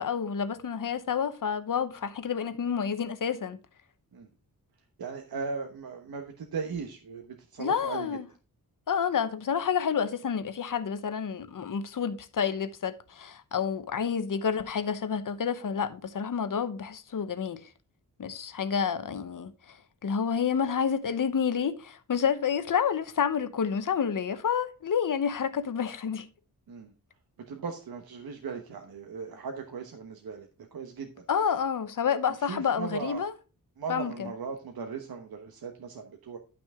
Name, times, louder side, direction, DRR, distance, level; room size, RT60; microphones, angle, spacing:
voice 1, 0.0-3.6 7.6-8.3 8.9-17.7 18.2-26.3 31.3-33.3 33.9-34.3, left 7 dB, 60° left, 0.9 m, -29 dB
voice 2, 5.0-8.2 26.7-26.9 27.5-31.2 32.5-33.3 33.8-36.4, right 5 dB, 75° right, 1.1 m, -38 dB
11.5 x 6.0 x 3.6 m
wide cardioid pair, 145°, 36 cm